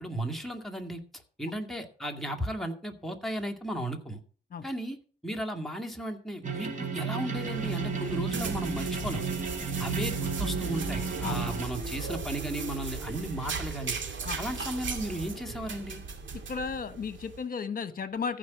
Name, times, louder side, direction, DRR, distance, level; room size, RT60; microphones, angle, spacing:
voice 1, 0.0-4.2 4.6-5.0 5.2-9.2 9.8-14.0 14.4-16.0, right 1 dB, ahead, 1 dB, 2.1 m, -35 dB
sound 1, 6.4-11.7, right 5 dB, 40° right, 2.5 m, -33 dB
sound 2, 7.4-17.4, right 4 dB, 65° right, 2.3 m, -37 dB
voice 2, 16.5-18.4, left 5 dB, 45° left, 11 dB, 1.3 m, -34 dB
14.5 x 5.3 x 7.1 m, 0.40 s
cardioid pair, 105°, 20 cm